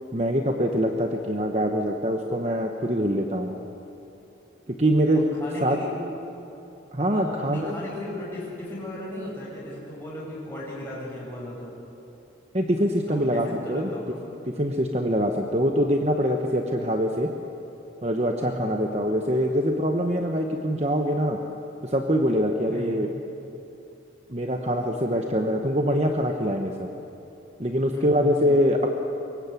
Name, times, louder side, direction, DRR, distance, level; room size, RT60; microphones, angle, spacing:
voice 1, 0.1-3.5 4.8-5.2 5.6-5.8 6.9-7.7 12.5-13.9 14.6-17.3 18.0-21.4 21.8-23.1 24.3-26.9 27.6-28.9, equal, 35° right, 3 dB, 1.2 m, -24 dB
voice 2, 5.4-5.9 7.0-11.7 13.1-14.2 18.4-18.7 22.7-23.0 27.9-28.6, left 1 dB, 10° left, -7 dB, 6.8 m, -36 dB
25.0 x 22.5 x 8.4 m, 2.9 s
head